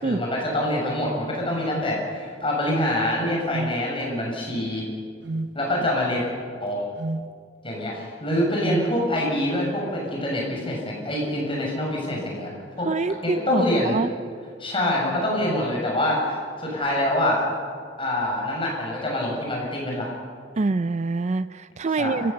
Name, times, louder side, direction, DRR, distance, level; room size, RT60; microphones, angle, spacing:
voice 1, 0.0-4.8 5.5-6.3 6.6-6.8 7.6-12.5 12.8-12.9 13.2-13.9 14.6-17.4 18.0-20.1 22.0-22.2, left 1 dB, 30° left, -2 dB, 6.8 m, -25 dB
sound 1, 3.5-3.8 5.2-5.6 7.0-7.3 8.6-8.9, right 2 dB, 60° right, 0.9 m, -29 dB
voice 2, 12.8-14.1 20.6-22.3, right 3 dB, 35° right, 13 dB, 0.4 m, -25 dB
29.0 x 15.5 x 7.0 m, 2.2 s
head